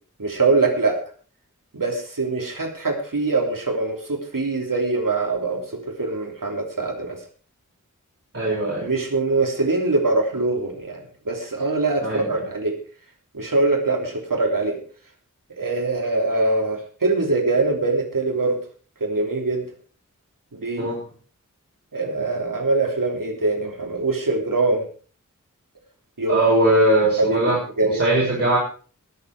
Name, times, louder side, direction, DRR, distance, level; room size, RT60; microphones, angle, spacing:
voice 1, 0.2-0.9 1.7-7.2 8.8-12.7 13.3-14.8 15.6-18.6 19.0-19.6 20.5-20.9 21.9-24.8 26.2-26.5 26.8-26.9 27.2-28.2, right 3 dB, 90° right, 2 dB, 3.3 m, -23 dB
voice 2, 8.3-8.9 12.0-12.4 20.8-21.0 26.3-27.6 27.8-28.6, right 1 dB, 45° right, -6 dB, 6.5 m, -20 dB
20.0 x 7.6 x 4.8 m, 0.40 s
wide cardioid pair, 45°, 32 cm